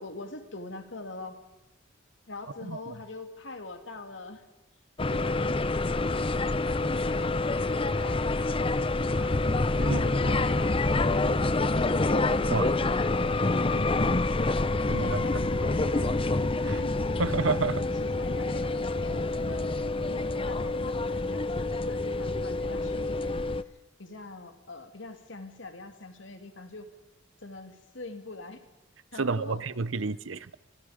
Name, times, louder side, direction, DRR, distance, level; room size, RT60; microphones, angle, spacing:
voice 1, 0.0-1.4 2.3-4.4 5.0-9.4 9.8-12.4 12.8-13.5 14.9-16.2 16.6-17.0 17.4-19.7 20.1-23.4 24.0-26.9 27.4-28.6 29.1-29.6, left 2 dB, 70° left, 6 dB, 2.8 m, -43 dB
voice 2, 2.6-2.9 9.9-10.0 12.5-12.7 14.9-15.2 17.2-17.8 29.2-30.6, right 4 dB, 85° right, 17 dB, 0.8 m, -29 dB
sound 1, 5.0-23.6, left 2 dB, 30° left, 0.7 m, -27 dB
29.5 x 25.5 x 5.2 m, 1.0 s
head